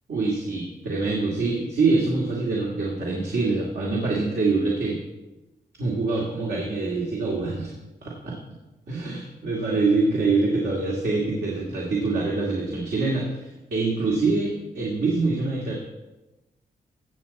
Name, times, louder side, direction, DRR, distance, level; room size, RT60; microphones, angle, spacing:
voice 1, 0.1-5.0 5.8-7.7 8.0-8.4 8.9-15.8, right 3 dB, 70° right, -3 dB, 2.2 m, -25 dB
16.5 x 7.1 x 4.1 m, 1.0 s
cardioid pair, 70°, 17 cm